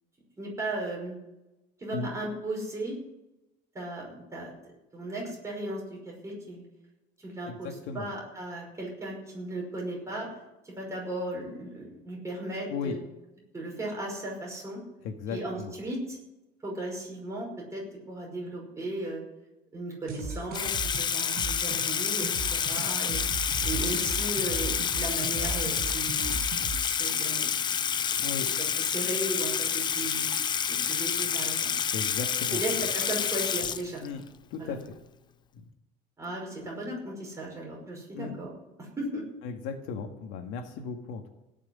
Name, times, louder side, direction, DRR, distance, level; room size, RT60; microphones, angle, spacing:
voice 1, 0.4-1.1 1.8-3.0 3.7-4.5 4.9-6.6 7.2-10.3 10.6-13.0 13.5-14.8 15.3-16.2 16.6-19.2 19.7-23.2 23.6-26.3 27.0-28.0 28.9-30.3 30.7-31.7 32.5-34.0 34.6-34.7 36.2-38.5 38.8-39.3, right 1 dB, 15° right, -2 dB, 5.5 m, -36 dB
voice 2, 7.5-8.1 12.7-13.0 15.0-15.7 28.2-28.5 31.9-32.9 34.0-34.2 34.5-35.0 35.5-35.7 38.0-38.4 39.4-41.3, left 5 dB, 80° left, 5 dB, 1.9 m, -36 dB
sound 1, 20.1-26.8, right 4 dB, 45° right, 4.8 m, -37 dB
Water tap faucet / Sink (filling or washing), 20.5-34.3, left 7 dB, 20° left, 0.4 m, -29 dB
17.0 x 6.6 x 9.7 m, 0.96 s
cardioid pair, 175°, 20 cm